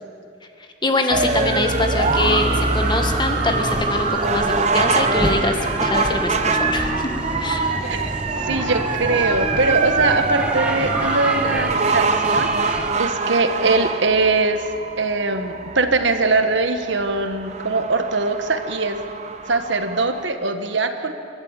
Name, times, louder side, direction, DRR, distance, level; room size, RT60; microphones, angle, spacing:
voice 1, 0.8-7.1 7.4-7.7, left 2 dB, 20° left, 4 dB, 1.7 m, -23 dB
sound 1, 1.1-20.3, right 4 dB, 35° right, 0.9 m, -24 dB
sound 2, 2.0-12.9, equal, 5° right, 1.4 m, -28 dB
voice 2, 7.8-14.7 15.0-19.0 19.5-21.1, right 3 dB, 60° right, 7 dB, 1.5 m, -22 dB
28.0 x 12.5 x 8.9 m, 2.5 s
head